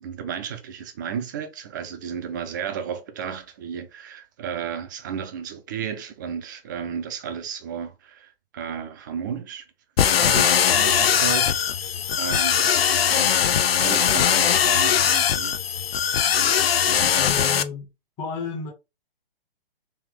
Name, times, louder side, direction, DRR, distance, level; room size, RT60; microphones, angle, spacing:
voice 1, 0.0-9.6 10.1-11.9 12.2-13.4 13.7-15.6 16.4-17.2, right 7 dB, 20° right, 0.4 m, -33 dB
sound 1, 10.0-17.6, left 8 dB, 75° left, 0.5 m, -20 dB
voice 2, 17.2-17.9 18.2-18.7, left 5 dB, 15° left, 0.7 m, -31 dB
3.4 x 3.0 x 3.4 m
figure-of-eight pair, 130°, 30 cm